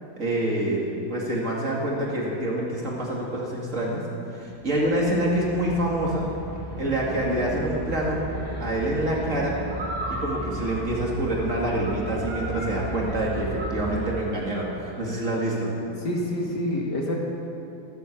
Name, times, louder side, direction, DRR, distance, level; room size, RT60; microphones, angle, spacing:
voice 1, 0.2-4.0 4.3-6.3 6.8-8.2 8.6-9.6 10.1-15.7, right 1 dB, 40° right, -3 dB, 2.5 m, -26 dB
sound 1, 4.4-14.1, right 1 dB, 60° right, 4.0 m, -34 dB
voice 2, 16.0-17.2, left 1 dB, 60° left, -1 dB, 2.5 m, -27 dB
14.0 x 12.0 x 7.3 m, 2.7 s
omnidirectional pair, 2.1 m